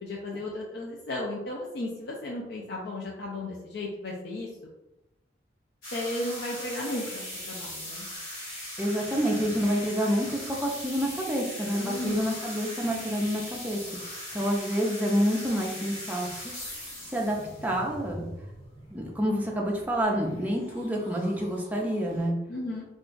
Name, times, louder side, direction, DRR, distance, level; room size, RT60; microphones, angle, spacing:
voice 1, 0.0-4.5 5.9-8.0 11.8-12.4 22.5-22.9, left 1 dB, 60° left, -2 dB, 0.4 m, -35 dB
sound 1, 5.8-22.3, left 1 dB, 85° left, 1.4 m, -40 dB
voice 2, 8.8-13.8 14.3-16.5 17.1-17.4 17.6-18.3 18.9-22.4, equal, 10° right, -2 dB, 0.4 m, -28 dB
2.5 x 2.2 x 3.7 m, 0.95 s
head